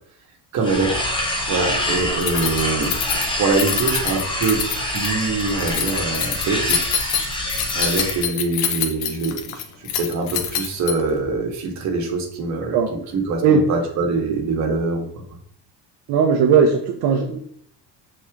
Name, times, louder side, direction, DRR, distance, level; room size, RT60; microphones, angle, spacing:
voice 1, 0.5-3.0 3.4-6.9 7.7-15.1, right 3 dB, 40° right, 1 dB, 1.5 m, -24 dB
sound 1, 0.6-8.2, left 1 dB, 10° left, 0.9 m, -26 dB
Keys jangling, 2.2-11.2, left 8 dB, 60° left, 1.0 m, -26 dB
voice 2, 16.1-17.4, right 6 dB, 60° right, 1 dB, 0.9 m, -17 dB
6.5 x 4.3 x 3.5 m, 0.62 s
cardioid pair, 165°, 43 cm